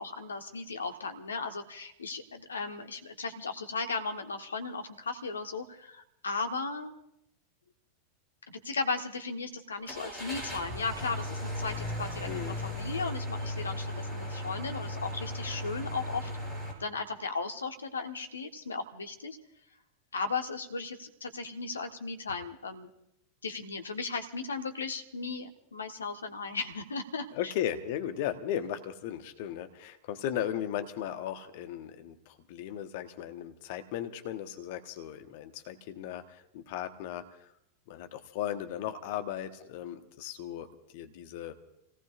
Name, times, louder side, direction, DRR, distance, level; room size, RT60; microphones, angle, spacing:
voice 1, 0.0-6.9 8.5-16.3 16.8-19.4 20.1-22.9 23.4-27.5, left 4 dB, 75° left, 6 dB, 1.3 m, -36 dB
Car / Engine starting, 9.9-16.7, left 1 dB, 5° right, 7.5 m, -36 dB
voice 2, 12.3-12.6 27.3-37.4 37.9-41.5, left 10 dB, 55° left, 7 dB, 1.2 m, -36 dB
30.0 x 18.0 x 2.5 m, 0.79 s
figure-of-eight pair, 85°, 0 cm